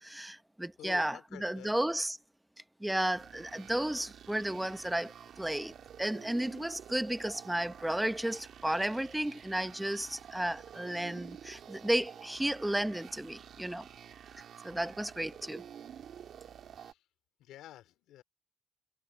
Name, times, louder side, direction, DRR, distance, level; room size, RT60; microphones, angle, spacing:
voice 1, 0.0-2.2 2.8-13.9 14.6-15.6, right 1 dB, 5° right, 0.8 m, -33 dB
voice 2, 0.8-1.8 16.8-17.0 17.4-18.2, left 13 dB, 90° left, 3.0 m, -49 dB
sound 1, 3.1-16.9, right 9 dB, 65° right, 2.5 m, -50 dB
cardioid pair, 90°, 0 cm